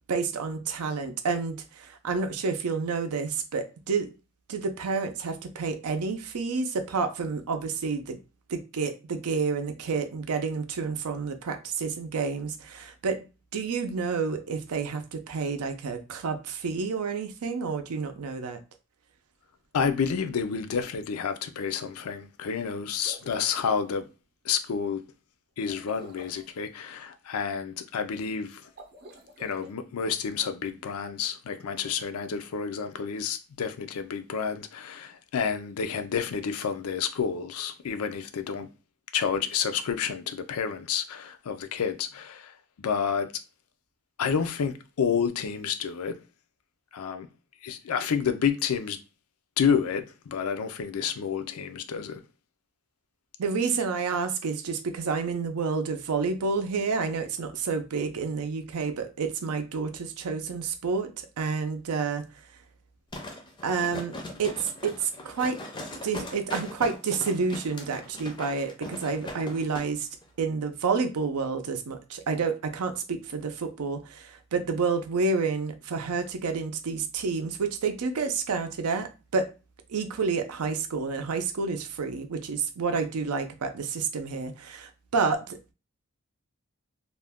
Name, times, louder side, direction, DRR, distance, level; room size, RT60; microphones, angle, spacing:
voice 1, 0.1-4.1 4.5-8.2 8.5-13.3 13.5-18.6 53.4-62.2 63.6-65.6 66.0-70.1 70.4-79.5 79.9-85.7, right 4 dB, 85° right, 0.5 m, -29 dB
voice 2, 19.7-24.1 24.4-25.0 25.6-28.6 29.4-38.7 39.1-43.3 44.2-46.2 46.9-47.3 47.6-49.0 49.6-52.2, left 6 dB, 80° left, 0.4 m, -29 dB
sound 1, 22.9-23.8 25.6-26.5 28.6-29.7, equal, 45° right, 0.6 m, -49 dB
sound 2, 63.1-69.9 70.2-70.3, left 1 dB, 20° left, 0.4 m, -40 dB
2.5 x 2.1 x 3.4 m
head